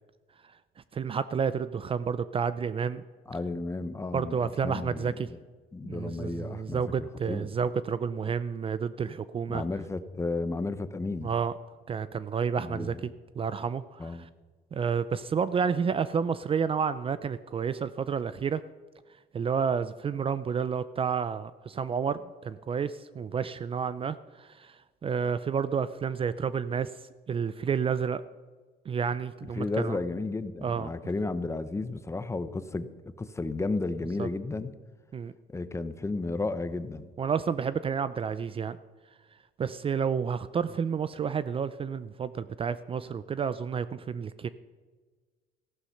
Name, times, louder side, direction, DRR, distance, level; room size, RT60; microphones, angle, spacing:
voice 1, 0.9-3.0 4.1-5.3 5.8-9.6 11.2-11.5 11.9-13.1 13.4-14.3 14.7-18.6 19.3-24.8 25.0-26.9 27.3-28.2 28.9-30.0 30.6-30.9 34.2-34.3 35.1-35.3 37.2-38.8 39.6-44.5, right 6 dB, 35° right, 15 dB, 0.5 m, -30 dB
voice 2, 3.3-5.4 5.7-7.5 9.5-11.3 12.6-13.0 14.0-14.2 29.6-34.7 35.5-37.1, left 3 dB, 15° left, 12 dB, 0.9 m, -33 dB
14.5 x 11.5 x 5.7 m, 1.4 s
cardioid pair, 110°, 17 cm